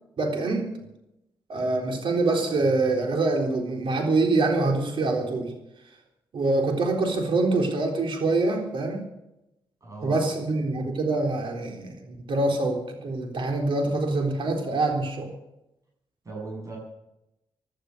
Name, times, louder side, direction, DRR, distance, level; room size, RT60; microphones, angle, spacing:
voice 1, 0.2-0.9 1.5-5.5 6.3-9.1 10.0-15.3, right 2 dB, 65° right, 2 dB, 3.9 m, -25 dB
voice 2, 9.8-10.3 16.2-16.8, right 3 dB, 35° right, -1 dB, 7.2 m, -37 dB
17.0 x 11.5 x 6.8 m, 0.90 s
cardioid pair, 95°, 9 cm